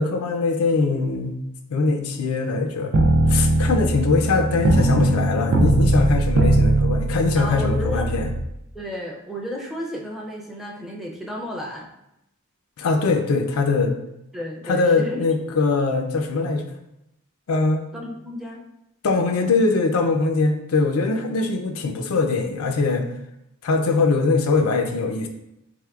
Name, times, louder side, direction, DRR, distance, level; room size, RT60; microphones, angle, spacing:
voice 1, 0.0-1.4 1.7-2.9 3.3-8.3 12.8-14.0 14.6-16.6 17.5-17.9 19.0-23.1 23.6-25.3, left 3 dB, 85° left, 5 dB, 0.4 m, -22 dB
sound 1, 2.9-8.4, right 1 dB, 70° right, 0.4 m, -20 dB
voice 2, 7.3-8.1 8.7-11.9 14.3-15.2 17.9-18.6, equal, ahead, -2 dB, 0.4 m, -32 dB
3.5 x 3.2 x 2.3 m, 0.85 s
head